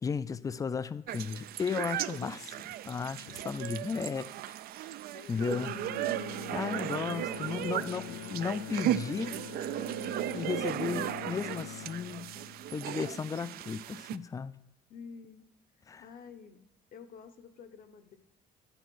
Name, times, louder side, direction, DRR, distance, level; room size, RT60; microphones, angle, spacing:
voice 1, 0.0-4.3 5.3-5.7 6.5-9.3 10.3-12.3 12.7-14.5 15.9-16.0, left 5 dB, 20° left, 0.3 m, -35 dB
sound 1, 1.1-14.2, right 12 dB, 65° right, 0.4 m, -36 dB
voice 2, 5.1-5.9 6.7-7.2 14.9-15.4 15.8-18.2, left 6 dB, 60° left, 0.9 m, -50 dB
Bowed string instrument, 5.3-13.6, left 14 dB, 75° left, 0.5 m, -45 dB
12.0 x 4.4 x 6.2 m
cardioid pair, 110°, 17 cm